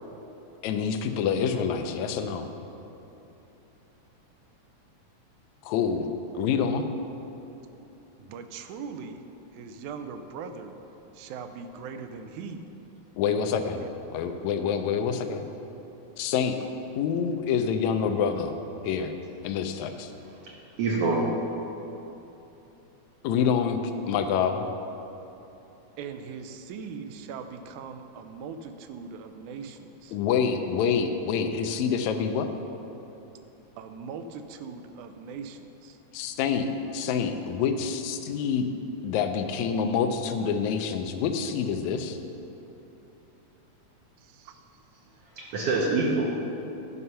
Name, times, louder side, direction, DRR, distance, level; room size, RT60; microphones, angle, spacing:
voice 1, 0.6-2.5 5.6-6.1 6.3-6.9 13.2-13.8 14.1-15.5 16.2-16.7 17.0-18.6 18.8-19.1 19.4-20.1 23.2-23.8 24.1-24.7 30.1-32.5 36.1-38.7 39.0-42.2, left 6 dB, 80° left, 7 dB, 1.9 m, -27 dB
voice 2, 8.2-9.2 9.5-10.8 11.1-12.7 13.8-13.9 26.0-30.2 33.8-36.0 44.2-45.2, right 5 dB, 85° right, 8 dB, 2.0 m, -40 dB
voice 3, 20.2-21.3 45.4-46.3, right 3 dB, 65° right, -3 dB, 1.6 m, -26 dB
11.0 x 5.6 x 5.6 m, 3.0 s
omnidirectional pair, 3.5 m